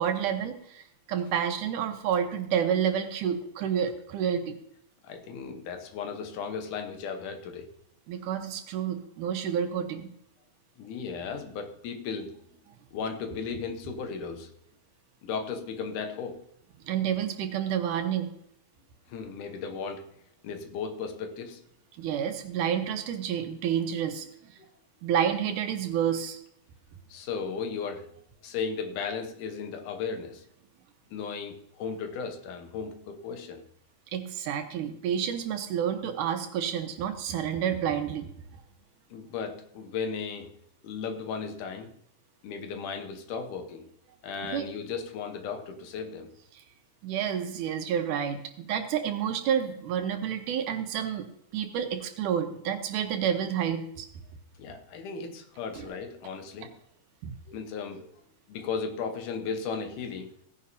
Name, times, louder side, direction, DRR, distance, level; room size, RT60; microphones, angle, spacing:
voice 1, 0.0-4.6 8.1-10.1 16.8-18.3 22.0-24.5 25.0-26.4 34.1-38.3 44.4-44.7 46.5-46.6 47.0-51.3 51.5-54.1 55.7-55.9 57.2-57.3, right 8 dB, 80° right, 6 dB, 2.5 m, -29 dB
voice 2, 5.0-7.7 10.8-12.4 12.9-14.5 15.2-16.4 19.1-20.1 20.4-21.6 24.6-24.7 27.1-28.1 28.4-30.5 31.1-33.7 39.1-40.6 40.8-41.9 42.4-43.9 44.2-46.3 54.6-56.8 57.5-58.1 58.5-60.4, left 5 dB, 80° left, 6 dB, 2.6 m, -36 dB
17.0 x 9.8 x 2.7 m, 0.75 s
omnidirectional pair, 3.6 m